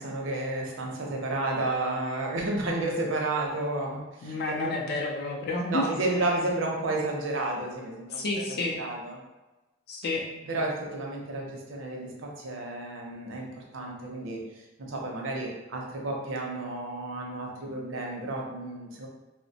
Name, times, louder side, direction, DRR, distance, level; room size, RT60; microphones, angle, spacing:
voice 1, 0.0-4.7 5.7-9.2 10.5-14.4 14.9-19.1, right 2 dB, 70° right, -1 dB, 0.6 m, -31 dB
voice 2, 4.2-5.9 8.1-8.8 9.9-10.3, left 2 dB, 55° left, -1 dB, 0.4 m, -30 dB
2.9 x 2.1 x 2.7 m, 1.1 s
head